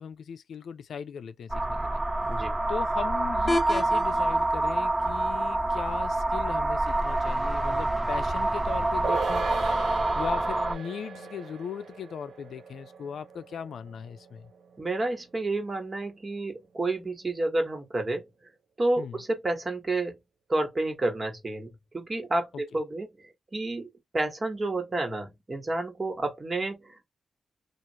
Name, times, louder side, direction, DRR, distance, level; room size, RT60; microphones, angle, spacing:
voice 1, 0.0-2.0 2.7-9.5 10.1-14.5 19.0-19.2 22.5-22.6, left 7 dB, 85° left, 0.4 m, -38 dB
sound 1, 1.5-10.7, right 2 dB, 20° right, 0.4 m, -27 dB
voice 2, 2.2-2.6 14.8-18.3 18.8-20.2 20.5-23.9 24.1-27.1, right 2 dB, 40° right, 1.4 m, -30 dB
sound 2, 3.5-9.5, left 1 dB, 25° left, 0.9 m, -37 dB
sound 3, 9.0-15.7 16.0-16.1, right 5 dB, 80° right, 0.6 m, -39 dB
3.0 x 2.4 x 2.9 m
cardioid pair, 65°, 0 cm